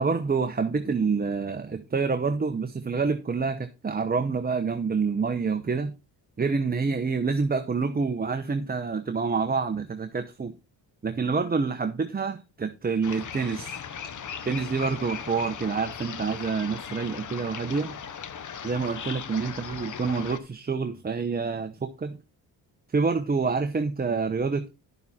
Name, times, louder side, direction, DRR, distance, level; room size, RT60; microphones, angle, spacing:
voice 1, 0.0-5.9 6.4-10.6 11.0-13.8 14.5-17.9 18.6-22.2 22.9-24.7, right 4 dB, 20° right, 0.9 m, -27 dB
sound 1, 13.0-20.4, left 7 dB, 45° left, 1.0 m, -38 dB
11.0 x 6.9 x 4.3 m
cardioid pair, 100°, 44 cm